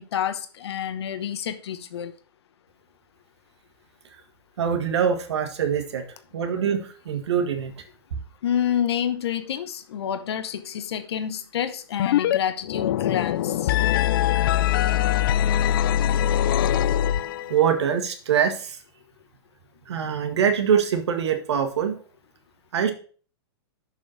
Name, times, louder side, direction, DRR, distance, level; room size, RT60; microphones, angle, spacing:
voice 1, 0.0-2.1 8.4-13.7, left 9 dB, 70° left, 1.0 m, -28 dB
voice 2, 4.6-6.0 6.3-7.7 17.5-18.8 19.9-22.0 22.7-22.9, right 7 dB, 80° right, 1.7 m, -23 dB
sound 1, 12.0-12.4 12.6-17.6, left 11 dB, 55° left, 0.4 m, -22 dB
6.9 x 5.3 x 6.3 m
hypercardioid pair, 165°, 14 cm